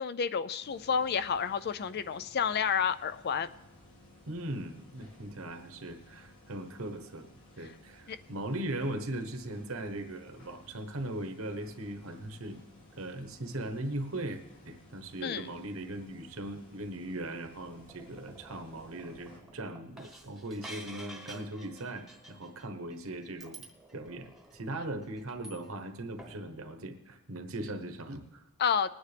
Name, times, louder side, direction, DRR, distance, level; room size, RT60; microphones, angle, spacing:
voice 1, 0.0-3.5 8.1-8.2 15.2-15.5 28.6-28.9, left 7 dB, 50° left, 13 dB, 0.4 m, -30 dB
sound 1, 0.6-19.4, left 1 dB, 65° left, 2.9 m, -57 dB
voice 2, 4.3-7.3 7.6-12.6 13.0-23.6 23.9-28.4, right 1 dB, 70° right, 7 dB, 1.1 m, -39 dB
sound 2, 17.7-25.9 26.2-26.4, right 1 dB, ahead, 1.1 m, -51 dB
20.5 x 9.4 x 3.4 m, 1.0 s
head